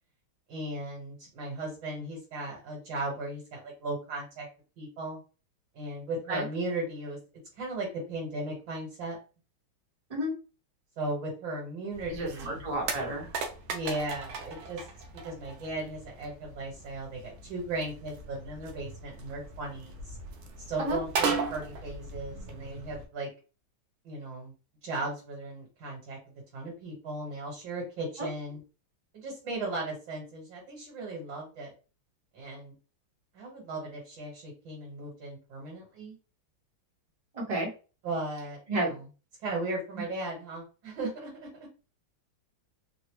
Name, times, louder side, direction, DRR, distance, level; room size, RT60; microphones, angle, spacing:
voice 1, 0.5-4.5 4.8-5.2 5.7-7.2 7.6-9.2 11.0-12.6 13.7-14.8 15.2-20.2 20.6-23.3 24.0-24.5 24.8-28.6 29.1-31.7 32.3-32.7 33.3-36.1 38.0-39.0 39.4-41.5, right 2 dB, 70° right, -3 dB, 1.9 m, -36 dB
sound 1, 11.9-23.1, right 4 dB, 90° right, 1.5 m, -38 dB
voice 2, 12.1-13.3 20.8-21.0 28.2-28.3 37.3-37.7 38.7-38.9 39.9-40.0, right 1 dB, 25° right, -2 dB, 0.8 m, -31 dB
3.9 x 2.1 x 3.0 m, 0.33 s
omnidirectional pair, 2.2 m